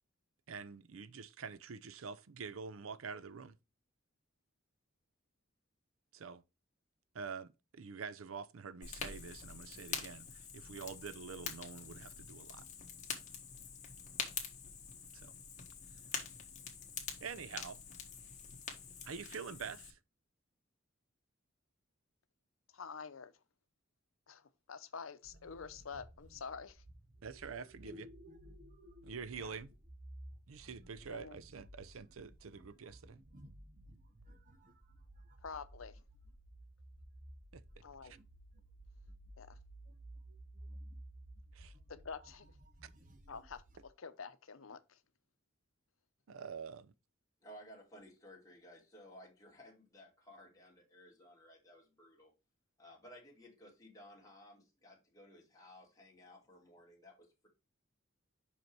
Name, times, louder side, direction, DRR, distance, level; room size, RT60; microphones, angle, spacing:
voice 1, 0.5-3.5 6.1-6.4 7.1-12.7 15.1-15.3 17.2-17.8 19.0-20.0 27.2-28.1 29.0-29.7 30.5-33.2 37.5-37.6 38.0-38.2 41.5-41.7 42.8-42.9 46.3-46.9, right 5 dB, 90° right, 0.6 m, -46 dB
Fire, 8.8-19.9, left 7 dB, 35° left, 1.6 m, -45 dB
voice 2, 22.7-23.3 24.3-26.8 29.4-29.5 31.1-31.4 35.4-36.0 37.8-38.1 39.4-39.6 41.9-42.5 43.3-45.0, left 5 dB, 85° left, 0.8 m, -48 dB
sound 1, 25.2-43.8, right 1 dB, 40° right, 1.0 m, -55 dB
voice 3, 47.4-52.3 52.8-57.5, equal, 15° left, 2.3 m, -57 dB
5.7 x 5.2 x 4.5 m
head